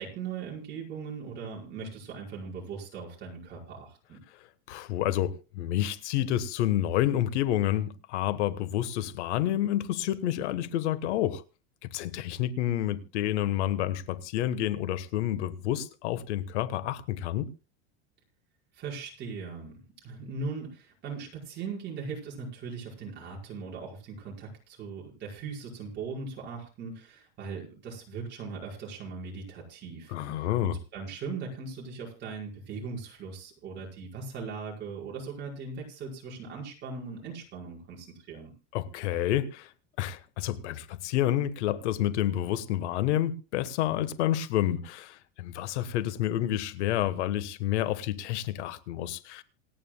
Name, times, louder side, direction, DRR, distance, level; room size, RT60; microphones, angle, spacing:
voice 1, 0.0-4.2 18.7-38.5, right 5 dB, 30° right, 5.2 m, -39 dB
voice 2, 4.7-11.4 11.8-17.5 30.1-30.8 38.7-39.7 40.0-49.4, left 12 dB, 80° left, 1.4 m, -29 dB
27.5 x 9.3 x 2.2 m
supercardioid pair, 165°, 34 cm